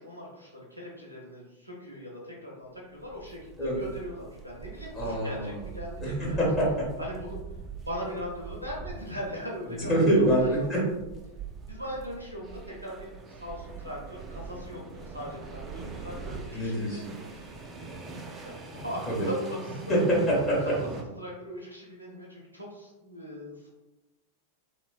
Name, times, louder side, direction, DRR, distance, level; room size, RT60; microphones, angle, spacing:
voice 1, 0.0-6.4 7.0-7.4 7.9-10.7 11.7-17.6 18.4-19.9 20.8-20.9 21.2-23.7, equal, 85° right, -3 dB, 0.5 m, -40 dB
sound 1, 2.9-21.0, right 4 dB, 20° right, 0.3 m, -43 dB
voice 2, 4.9-5.6 6.0-6.9 9.8-10.8 16.5-17.1 19.1-19.3 19.9-20.8, right 1 dB, 25° left, -5 dB, 0.8 m, -25 dB
3.0 x 2.0 x 2.3 m, 1.0 s
figure-of-eight pair, 90°, 0 cm